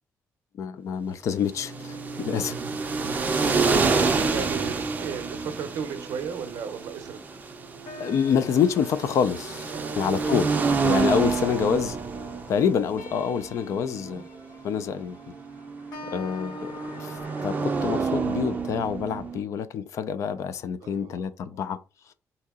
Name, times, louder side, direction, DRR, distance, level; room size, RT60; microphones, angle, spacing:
voice 1, 0.6-2.5 7.9-9.7 10.0-10.5 10.8-12.0 12.5-14.2 14.6-15.2 16.0-21.8, left 7 dB, 55° left, 0.4 m, -27 dB
sound 1, 1.5-19.4, right 4 dB, 25° right, 0.5 m, -28 dB
sound 2, 1.6-17.7, left 2 dB, 85° left, 0.9 m, -46 dB
voice 2, 2.2-2.8 3.0-3.5 4.3-7.2 9.7-10.6 14.1-14.2 20.8-21.3 21.5-21.6, right 7 dB, 75° right, 0.6 m, -36 dB
2.9 x 2.7 x 3.5 m
cardioid pair, 170°, 6 cm